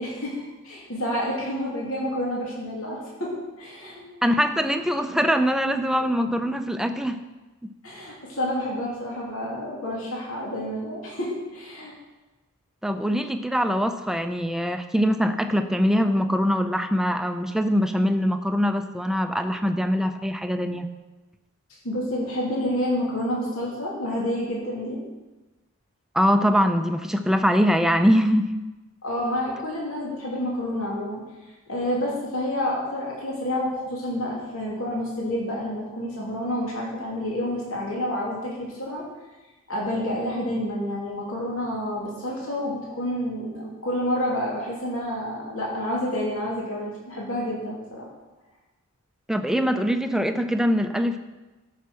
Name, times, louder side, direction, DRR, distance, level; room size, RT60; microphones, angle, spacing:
voice 1, 0.0-4.0 7.8-11.9 21.8-25.0 29.0-31.2 31.7-39.0 39.7-48.1, left 1 dB, 75° left, -4 dB, 2.8 m, -29 dB
voice 2, 4.2-7.2 7.6-7.7 12.8-20.9 26.1-28.5 49.3-51.2, equal, ahead, 7 dB, 0.6 m, -23 dB
13.0 x 5.9 x 6.3 m, 1.1 s
head